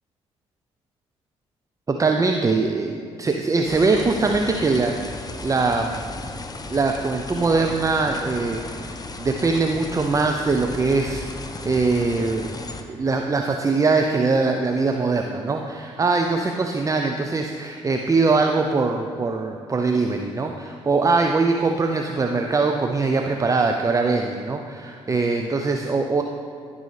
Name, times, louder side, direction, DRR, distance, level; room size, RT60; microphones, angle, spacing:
voice 1, 1.9-6.1 6.7-11.3 11.6-12.5 12.9-26.2, right 3 dB, 25° right, 4 dB, 0.5 m, -22 dB
sound 1, 3.7-12.8, left 3 dB, 30° left, 0.7 m, -35 dB
12.0 x 5.4 x 3.3 m, 2.3 s
hypercardioid pair, 50°, 14 cm